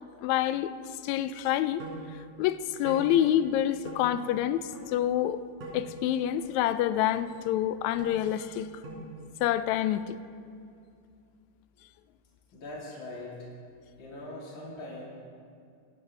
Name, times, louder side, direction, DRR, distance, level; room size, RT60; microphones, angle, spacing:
voice 1, 0.2-0.7 1.0-1.8 2.4-5.4 5.7-8.7 9.4-10.2, left 11 dB, 80° left, 13 dB, 1.7 m, -27 dB
sound 1, 1.8-2.0 2.9-3.1 3.9-4.0 4.7-4.8 5.6-5.8 6.4-6.5 7.2-7.3 8.0-8.1 8.8-9.1, right 2 dB, 85° right, 4.9 m, -41 dB
voice 2, 12.5-13.5 14.0-15.0, left 2 dB, 40° left, -6 dB, 3.6 m, -41 dB
24.5 x 12.0 x 3.3 m, 2.4 s
omnidirectional pair, 3.6 m